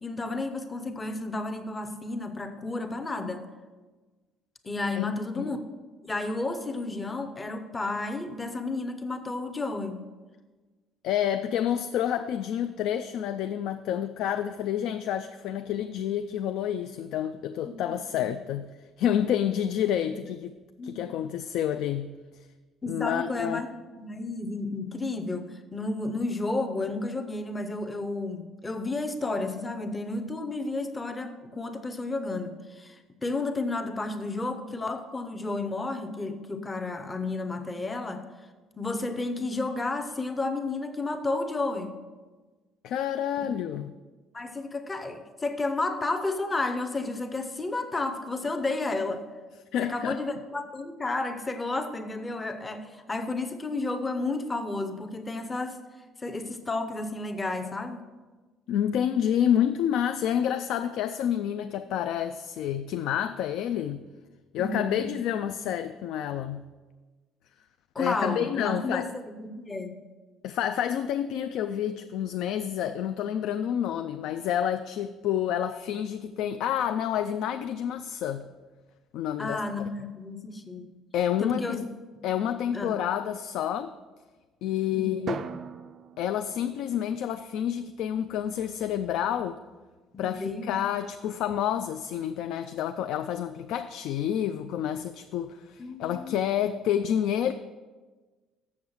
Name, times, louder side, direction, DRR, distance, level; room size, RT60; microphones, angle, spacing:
voice 1, 0.0-3.5 4.7-5.6 6.0-10.1 17.6-18.3 20.8-21.1 22.8-38.3 38.8-41.9 43.4-43.5 44.3-49.3 49.8-55.8 56.2-58.0 64.6-65.1 67.9-70.0 79.4-80.9 81.4-81.9 82.1-82.3 82.7-83.0 84.9-85.2 90.1-90.8 95.8-96.6, left 2 dB, 15° left, 7 dB, 0.6 m, -32 dB
voice 2, 11.0-18.7 19.0-20.5 20.8-22.1 22.9-23.6 42.8-43.9 49.7-50.2 58.7-64.0 64.5-66.6 68.0-69.1 70.4-78.4 79.1-79.6 81.1-81.9 82.2-83.9 84.6-85.4 86.2-89.6 90.2-97.5, left 10 dB, 60° left, 9 dB, 0.3 m, -29 dB
Drum, 85.3-87.6, right 6 dB, 35° right, 0.3 m, -40 dB
7.2 x 6.9 x 6.3 m, 1.3 s
cardioid pair, 180°, 0 cm